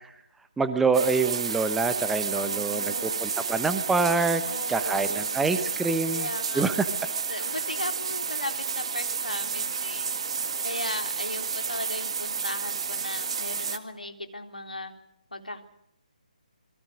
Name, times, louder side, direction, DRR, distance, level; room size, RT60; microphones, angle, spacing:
voice 1, 0.6-4.4 4.7-6.3 6.5-6.9, right 4 dB, 5° right, 10 dB, 1.0 m, -26 dB
sound 1, 0.9-13.8, right 6 dB, 40° right, 1.7 m, -31 dB
voice 2, 2.3-3.2 4.5-5.3 6.1-6.9 7.3-10.2 10.6-14.9 15.3-15.6, left 2 dB, 75° left, 5 dB, 3.7 m, -37 dB
27.5 x 22.5 x 6.3 m, 0.75 s
figure-of-eight pair, 145°, 5 cm